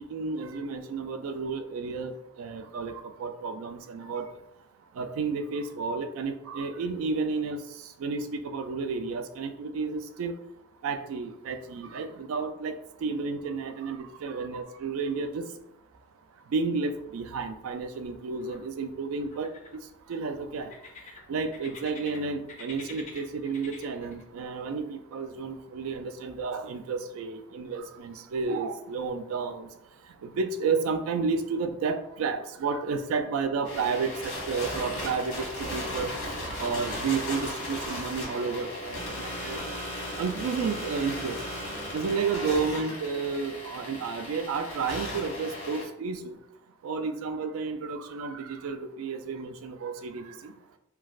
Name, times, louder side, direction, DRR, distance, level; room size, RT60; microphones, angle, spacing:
voice 1, 0.1-4.3 5.0-7.6 8.0-10.3 10.8-12.7 13.0-15.5 16.5-19.5 20.1-20.7 21.3-29.7 30.2-36.1 36.5-39.7 40.2-41.4 41.9-46.4 46.8-50.5, right 4 dB, 80° right, 8 dB, 0.3 m, -31 dB
sound 1, 16.8-17.4 17.6-18.6 19.2-20.1 20.6-22.2 22.5-24.2, left 4 dB, 35° left, 0.4 m, -47 dB
sound 2, 33.6-45.8, left 1 dB, 80° left, 1.2 m, -36 dB
3.1 x 2.3 x 2.4 m, 0.82 s
head